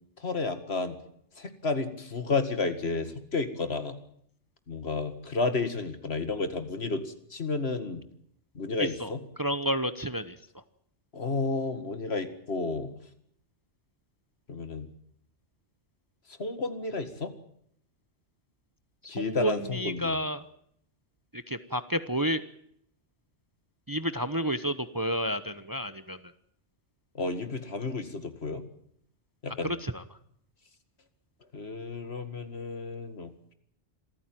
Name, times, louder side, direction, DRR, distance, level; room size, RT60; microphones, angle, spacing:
voice 1, 0.2-1.0 1.4-4.0 4.7-8.0 8.5-9.2 11.1-13.0 14.5-14.9 16.3-17.3 19.1-20.2 27.1-28.6 29.4-29.7 31.5-33.5, left 3 dB, 65° left, 10 dB, 2.2 m, -32 dB
voice 2, 9.4-10.4 19.2-20.4 21.3-22.4 23.9-26.2 29.6-30.0, equal, 20° right, 12 dB, 0.9 m, -30 dB
26.5 x 14.5 x 9.2 m, 0.69 s
omnidirectional pair, 1.2 m